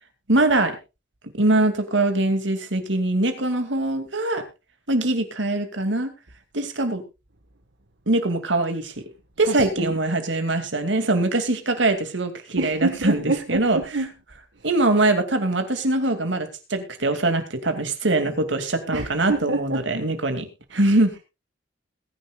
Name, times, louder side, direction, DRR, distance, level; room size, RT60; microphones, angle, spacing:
voice 1, 0.3-0.8 1.3-4.4 4.9-6.1 6.5-7.0 8.1-8.9 9.4-13.2 13.5-13.8 14.6-20.5 20.7-21.1, right 2 dB, 85° right, 7 dB, 2.5 m, -22 dB
voice 2, 9.4-10.0 12.6-14.1 18.9-20.0 20.7-21.2, right 3 dB, 70° right, 4 dB, 1.4 m, -28 dB
21.0 x 10.0 x 2.4 m, 0.27 s
head